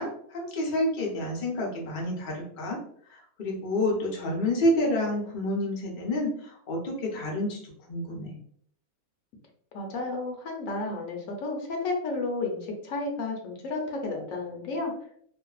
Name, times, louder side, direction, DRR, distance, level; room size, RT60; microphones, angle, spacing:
voice 1, 0.0-2.8 3.4-7.6 7.9-8.4, left 1 dB, 50° left, -2 dB, 0.6 m, -28 dB
voice 2, 9.7-14.9, left 3 dB, 70° left, 1 dB, 1.0 m, -32 dB
2.6 x 2.4 x 2.3 m, 0.64 s
omnidirectional pair, 1.6 m